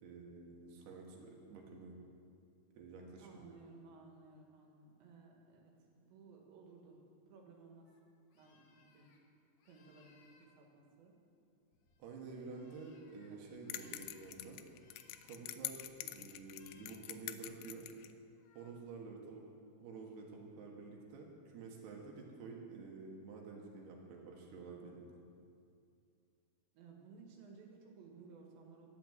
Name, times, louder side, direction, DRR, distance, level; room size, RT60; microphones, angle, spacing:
voice 1, 0.0-1.9 2.7-3.5 12.0-14.6 15.2-17.9 18.5-19.4 19.8-25.1, right 4 dB, 70° right, 0 dB, 3.4 m, -50 dB
voice 2, 3.2-7.0 7.3-7.9 8.3-9.1 9.6-11.2 12.3-12.8 13.3-13.5 13.8-14.1 26.7-28.9, right 4 dB, 90° right, 0 dB, 4.0 m, -58 dB
sound 1, 7.9-8.0 8.3-9.2 9.6-10.5 11.1-13.3 13.6-14.3 14.7-15.4 16.4-17.0 18.3-18.7, left 5 dB, 60° left, 2.3 m, -69 dB
sound 2, 13.7-18.1, left 14 dB, 80° left, 2.6 m, -46 dB
12.0 x 10.0 x 7.5 m, 2.4 s
omnidirectional pair, 5.0 m